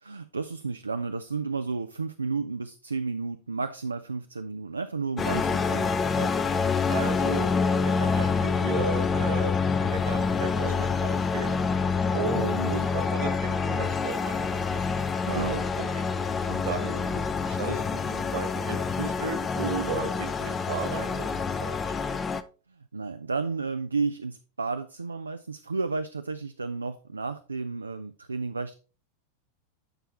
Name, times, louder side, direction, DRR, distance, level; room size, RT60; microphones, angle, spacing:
voice 1, 0.0-5.9 12.3-12.8 15.3-15.6 22.9-28.7, right 4 dB, 75° right, 0.4 m, -32 dB
sound 1, 5.2-22.4, left 5 dB, 20° left, 0.5 m, -27 dB
voice 2, 6.1-6.5 6.9-7.5 7.8-11.6 12.1-14.4 15.3-16.0 16.5-17.2 17.5-21.9, right 4 dB, 50° right, 1.8 m, -34 dB
8.9 x 5.5 x 3.0 m
figure-of-eight pair, 90°, 0 cm